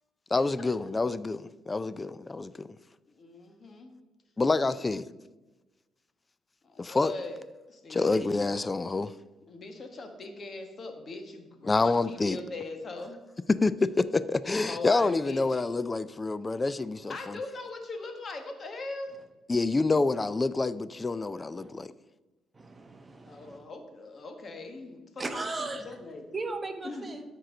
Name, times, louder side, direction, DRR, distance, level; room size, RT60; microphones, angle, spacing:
voice 1, 0.3-2.7 4.4-5.1 6.8-7.1 7.9-9.1 11.6-12.4 13.5-17.4 19.5-21.9, left 3 dB, 25° left, 16 dB, 0.4 m, -27 dB
voice 2, 3.1-3.9 4.6-4.7 6.6-7.4 7.7-8.2 9.5-13.2 14.7-15.6 17.1-19.1 23.3-26.2 26.8-27.1, left 2 dB, 45° left, 5 dB, 1.5 m, -40 dB
voice 3, 22.5-23.6 25.2-26.0 26.3-27.2, right 3 dB, 25° right, 6 dB, 1.0 m, -37 dB
13.0 x 4.6 x 3.8 m, 1.1 s
cardioid pair, 90°, 0 cm